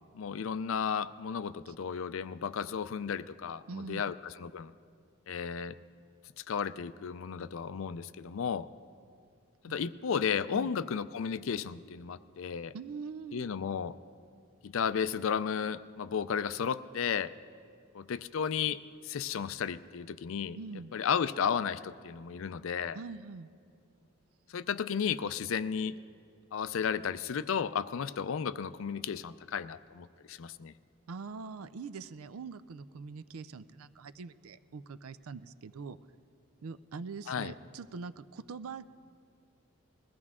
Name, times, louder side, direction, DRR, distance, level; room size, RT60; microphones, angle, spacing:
voice 1, 0.1-4.7 5.3-5.8 6.4-8.7 9.6-12.7 13.3-14.0 14.6-17.3 17.9-20.6 20.9-23.0 24.5-26.0 26.5-30.7 37.3-37.5, left 7 dB, 65° left, 15 dB, 0.4 m, -33 dB
voice 2, 3.7-4.0 9.7-9.8 10.5-10.7 12.7-13.4 20.6-20.9 22.9-23.5 31.1-36.0 36.6-38.9, right 4 dB, 80° right, 14 dB, 0.4 m, -43 dB
21.0 x 15.5 x 3.6 m, 2.4 s
head